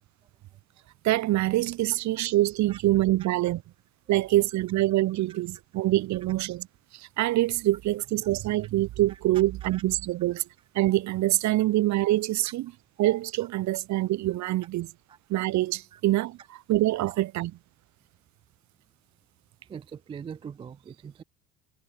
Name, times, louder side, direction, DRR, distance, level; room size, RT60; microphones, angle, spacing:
voice 1, 1.0-3.6 4.1-6.7 6.9-10.4 10.7-12.7 13.0-14.9 15.3-17.5, right 16 dB, 35° right, 0.8 m, -25 dB
voice 2, 19.6-21.2, right 7 dB, 10° right, 0.4 m, -42 dB
figure-of-eight pair, 65°, 48 cm